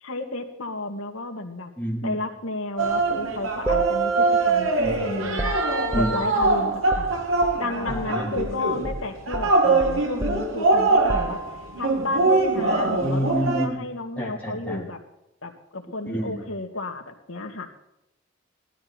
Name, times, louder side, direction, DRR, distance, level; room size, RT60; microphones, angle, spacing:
voice 1, 0.0-1.7 2.0-5.6 5.9-7.1 7.6-11.4 11.8-13.2 13.5-15.0 15.4-17.7, left 2 dB, 85° left, 4 dB, 2.2 m, -32 dB
voice 2, 1.8-2.2 4.8-5.2 5.9-6.1 7.9-8.3 13.0-13.8 14.2-14.8 16.1-16.4, equal, 5° left, -3 dB, 3.5 m, -28 dB
sound 1, 2.8-13.7, right 3 dB, 80° right, 2.2 m, -23 dB
sound 2, 3.7-8.1 8.4-8.6 8.8-11.8, right 2 dB, 10° right, 0.8 m, -32 dB
17.5 x 12.5 x 4.4 m, 0.87 s
head